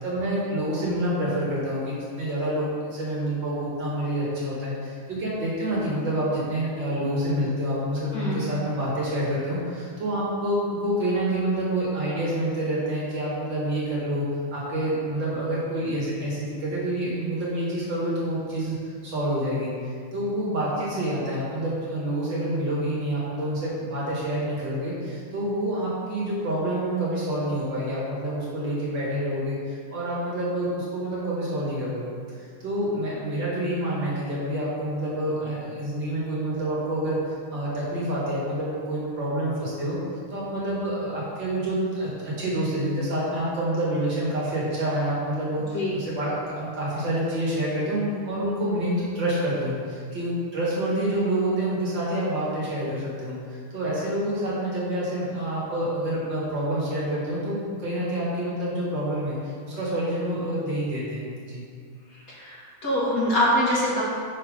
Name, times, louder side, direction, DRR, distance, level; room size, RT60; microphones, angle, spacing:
voice 1, 0.0-14.3 14.5-18.8 19.0-32.1 32.6-40.0 40.3-61.7, right 1 dB, 60° right, -7 dB, 2.6 m, -27 dB
voice 2, 8.1-8.5 45.7-46.0 62.3-64.0, left 1 dB, 45° left, -6 dB, 1.7 m, -24 dB
6.2 x 6.0 x 4.9 m, 2.1 s
omnidirectional pair, 2.3 m